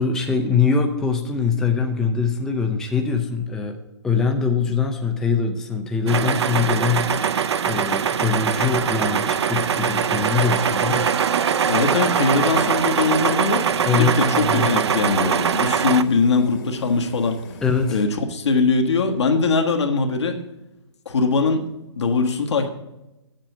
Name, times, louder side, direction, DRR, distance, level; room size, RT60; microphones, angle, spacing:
voice 1, 0.0-3.8 4.0-7.2 7.6-11.1 13.9-14.7 17.6-18.0, left 5 dB, 5° left, 3 dB, 0.4 m, -22 dB
sound 1, 6.1-16.0, right 7 dB, 65° right, 0.6 m, -22 dB
voice 2, 11.7-17.4 17.9-20.4 21.0-21.7 22.0-22.7, left 4 dB, 70° left, 3 dB, 1.5 m, -21 dB
Fire, 12.4-18.0, left 4 dB, 40° left, 1.3 m, -42 dB
7.5 x 6.7 x 7.3 m, 0.97 s
hypercardioid pair, 150°, 15 cm